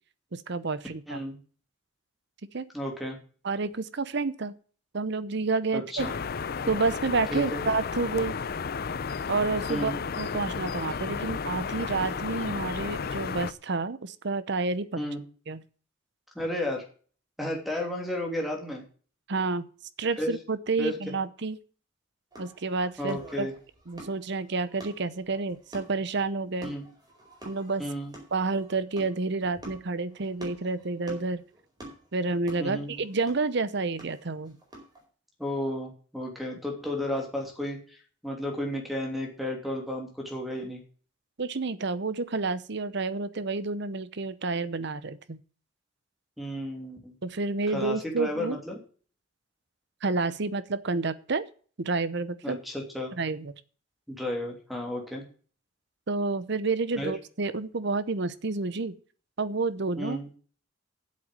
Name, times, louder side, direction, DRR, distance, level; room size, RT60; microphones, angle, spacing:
voice 1, 0.3-1.2 2.5-2.7 3.4-4.5 4.9-6.1 6.7-8.4 9.3-9.9 10.2-15.1 15.5-15.6 19.3-19.7 20.0-21.6 22.4-23.5 23.9-26.7 27.4-27.8 28.3-31.4 32.1-34.6 41.4-45.4 47.2-48.6 50.0-51.4 51.8-52.6 53.1-53.5 56.1-58.9 59.4-60.4, right 3 dB, 60° right, 15 dB, 0.8 m, -29 dB
voice 2, 2.7-3.2 5.7-6.1 7.3-7.6 9.7-10.0 15.0-15.2 16.3-16.8 17.4-18.8 20.2-20.3 20.8-21.0 23.0-23.5 26.6-26.8 27.8-28.1 32.6-32.9 35.4-40.8 46.4-47.1 47.7-48.8 52.4-53.1 54.1-55.2 57.0-57.1 60.0-60.3, left 1 dB, ahead, 1 dB, 2.9 m, -33 dB
sound 1, 6.0-13.5, left 5 dB, 50° left, 0.5 m, -33 dB
sound 2, 22.3-35.0, right 1 dB, 20° right, 4.7 m, -49 dB
8.3 x 7.7 x 8.8 m, 0.42 s
head